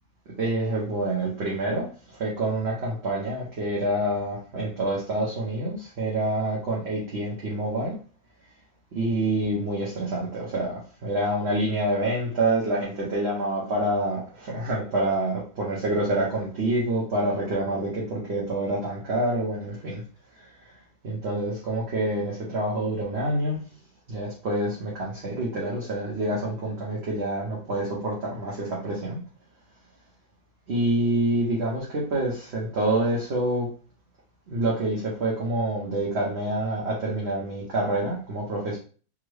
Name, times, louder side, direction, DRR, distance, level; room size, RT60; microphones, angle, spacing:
voice 1, 0.4-8.0 8.9-20.0 21.0-23.6 24.1-29.2 30.7-33.7 34.5-38.8, right 1 dB, 55° right, -5 dB, 1.0 m, -27 dB
3.6 x 2.1 x 3.2 m, 0.40 s
omnidirectional pair, 1.6 m